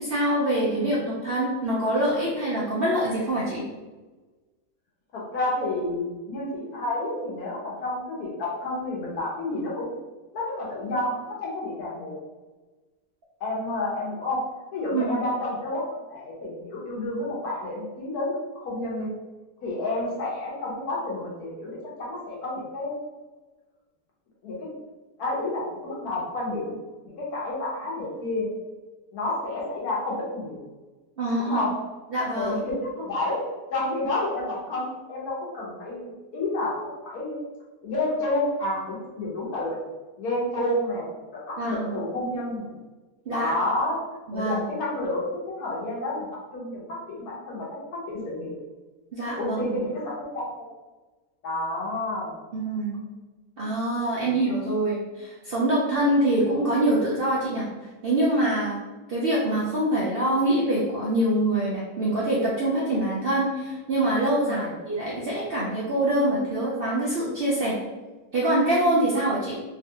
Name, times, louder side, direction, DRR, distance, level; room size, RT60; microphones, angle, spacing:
voice 1, 0.0-3.6 14.9-15.2 31.2-31.6 32.1-32.6 41.6-42.0 43.3-43.5 44.3-44.6 49.1-49.6 52.5-53.0 53.6-57.7 58.0-58.8 59.1-67.8 68.3-69.6, right 1 dB, 65° right, -6 dB, 0.6 m, -25 dB
voice 2, 5.1-9.9 10.3-12.1 13.4-14.4 14.7-19.1 19.6-22.9 24.4-24.7 25.2-26.8 27.0-28.5 29.1-30.6 31.4-31.7 32.3-33.4 33.7-37.4 37.8-39.8 40.2-42.7 43.3-44.0 44.3-46.3 46.5-48.5 49.4-50.7 51.4-52.4 54.1-54.3 64.4-64.8, left 2 dB, 85° left, -5 dB, 1.4 m, -30 dB
3.4 x 2.4 x 2.7 m, 1.2 s
omnidirectional pair, 1.6 m